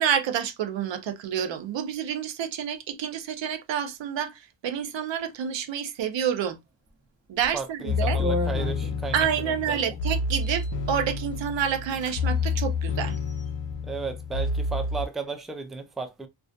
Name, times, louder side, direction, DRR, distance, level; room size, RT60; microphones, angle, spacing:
voice 1, 0.0-6.6 7.3-8.2 9.1-13.2, right 8 dB, 65° right, 0.6 m, -28 dB
sound 1, 7.4-7.6 8.2-9.3 10.3-10.7 11.3-11.4 11.7-12.2 12.4-12.6 13.1-13.8, equal, 30° right, 1.0 m, -34 dB
voice 2, 7.5-10.0 13.8-16.3, right 4 dB, ahead, 0.3 m, -34 dB
sound 2, 7.9-15.1, left 4 dB, 65° left, 0.6 m, -29 dB
2.4 x 2.3 x 2.4 m
cardioid pair, 90°, 48 cm